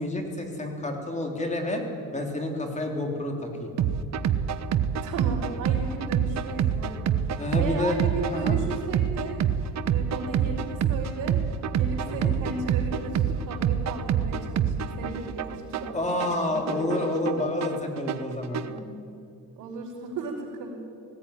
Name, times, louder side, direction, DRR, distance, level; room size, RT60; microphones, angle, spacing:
voice 1, 0.0-1.8 2.1-3.7 7.4-8.6 12.1-12.4 15.9-18.6, left 2 dB, 20° left, 2 dB, 3.4 m, -29 dB
sound 1, 3.8-18.8, right 8 dB, 55° right, 1.1 m, -27 dB
voice 2, 5.0-9.4 9.9-11.4 11.7-16.0 16.3-17.0 18.7-18.9 19.6-20.8, right 4 dB, 80° right, -6 dB, 4.7 m, -35 dB
19.5 x 16.0 x 10.0 m, 2.4 s
cardioid pair, 130°, 32 cm